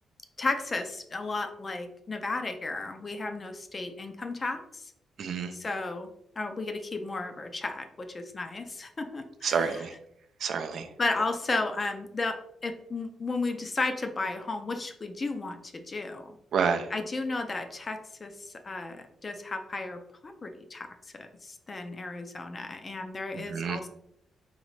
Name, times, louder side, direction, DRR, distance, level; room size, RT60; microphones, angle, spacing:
voice 1, 0.4-4.9 5.5-6.1 6.4-9.8 11.0-12.4 12.6-16.4 16.9-20.9 21.1-23.9, left 3 dB, 25° left, 6 dB, 0.4 m, -34 dB
voice 2, 5.2-5.5 9.4-9.9 10.4-10.9 16.5-16.8 23.3-23.8, right 6 dB, 60° right, 7 dB, 0.4 m, -28 dB
3.8 x 3.2 x 3.1 m, 0.76 s
cardioid pair, 155°, 0 cm